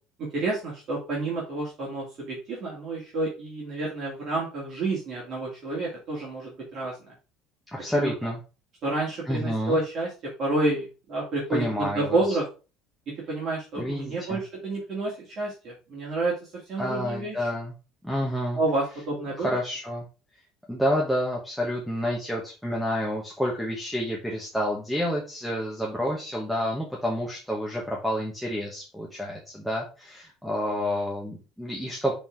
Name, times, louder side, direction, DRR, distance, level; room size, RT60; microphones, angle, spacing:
voice 1, 0.2-7.1 7.9-8.1 8.8-10.1 10.4-12.4 13.3-17.5 18.5-19.5, right 2 dB, 35° right, -5 dB, 2.3 m, -29 dB
voice 2, 7.7-8.4 9.3-9.8 11.5-12.4 13.8-14.4 16.8-17.7 18.0-18.6 19.4-20.1 20.7-32.1, equal, ahead, -3 dB, 1.1 m, -29 dB
6.1 x 3.9 x 4.5 m, 0.32 s
cardioid pair, 170°, 0 cm